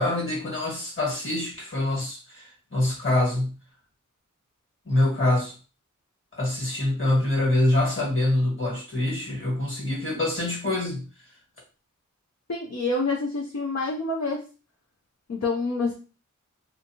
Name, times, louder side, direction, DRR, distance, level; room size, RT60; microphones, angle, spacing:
voice 1, 0.0-3.6 4.8-5.5 6.3-11.1, left 1 dB, 40° left, -2 dB, 1.5 m, -25 dB
voice 2, 12.5-14.4 15.3-15.9, left 3 dB, 55° left, 0 dB, 0.6 m, -27 dB
2.6 x 2.5 x 2.8 m, 0.35 s
wide cardioid pair, 45°, 32 cm